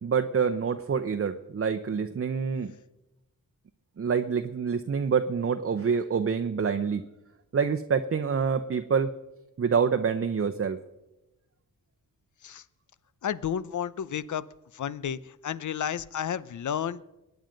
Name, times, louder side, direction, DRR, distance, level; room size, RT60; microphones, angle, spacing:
voice 1, 0.0-2.7 4.0-7.0 7.5-9.1 9.6-10.8, right 6 dB, 40° right, 7 dB, 0.8 m, -26 dB
voice 2, 13.2-14.4 14.7-17.0, left 9 dB, 60° left, 18 dB, 0.7 m, -32 dB
21.5 x 9.4 x 5.2 m, 0.98 s
cardioid pair, 70°, 33 cm